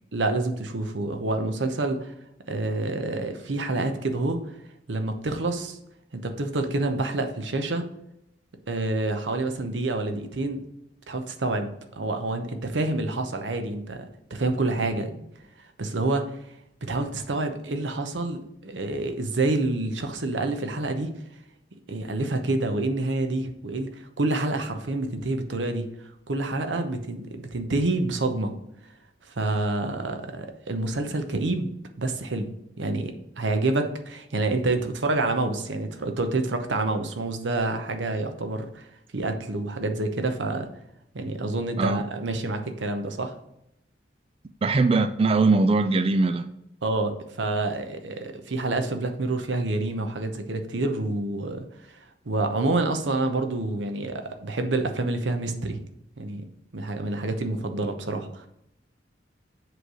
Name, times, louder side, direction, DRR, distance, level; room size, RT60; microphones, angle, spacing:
voice 1, 0.1-2.1 2.5-4.4 4.9-5.8 6.1-7.8 8.7-10.6 11.1-14.1 14.3-15.2 15.8-16.4 16.8-21.1 21.9-25.9 26.3-28.5 29.3-31.7 32.0-32.5 32.8-38.8 39.1-40.7 41.1-43.3 46.8-51.6 52.3-55.8 56.2-56.4 56.7-58.5, right 2 dB, 90° right, 6 dB, 0.8 m, -27 dB
voice 2, 44.6-46.5, right 3 dB, 30° right, 10 dB, 0.3 m, -21 dB
7.7 x 3.3 x 6.2 m, 0.80 s
head